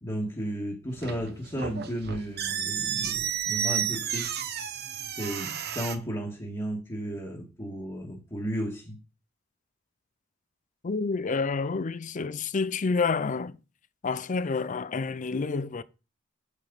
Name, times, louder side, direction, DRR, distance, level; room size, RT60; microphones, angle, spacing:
voice 1, 0.0-4.3 5.2-8.9, equal, 20° left, 1.8 m, -34 dB
sound 1, 0.9-6.0, right 8 dB, 55° right, 0.9 m, -32 dB
voice 2, 10.8-13.6 14.0-15.8, left 4 dB, 40° left, 0.5 m, -29 dB
8.5 x 6.9 x 4.0 m
head